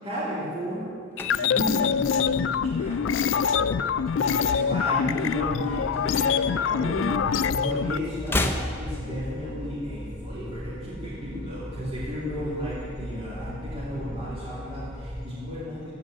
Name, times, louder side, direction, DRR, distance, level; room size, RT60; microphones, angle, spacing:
voice 1, 0.0-0.9 1.2-3.8 4.2-15.9, equal, 30° right, -11 dB, 3.1 m, -33 dB
sound 1, 0.8-3.4 3.7-4.0 4.3-5.8 6.0-7.4 7.7-9.8 10.0-10.1, left 1 dB, 10° left, 0.6 m, -34 dB
sound 2, 1.2-8.0, left 7 dB, 85° left, 0.3 m, -25 dB
sound 3, 1.7-15.3, equal, 15° right, 3.5 m, -38 dB
14.5 x 5.4 x 8.0 m, 2.3 s
head